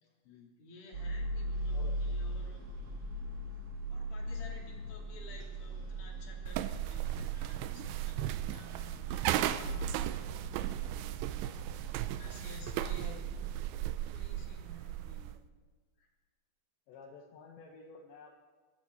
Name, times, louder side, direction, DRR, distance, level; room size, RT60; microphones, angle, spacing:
voice 1, 0.0-2.7 3.9-10.3 11.3-13.2 13.8-15.4 16.0-16.1, left 1 dB, 45° left, -2 dB, 4.4 m, -54 dB
sound 1, 0.9-13.5, right 1 dB, 45° right, 2.5 m, -40 dB
sound 2, 6.5-15.4, right 13 dB, 85° right, 2.9 m, -36 dB
voice 2, 12.9-13.2 16.9-18.4, left 4 dB, 75° left, 0 dB, 3.4 m, -52 dB
24.0 x 13.5 x 4.2 m, 1.4 s
omnidirectional pair, 5.4 m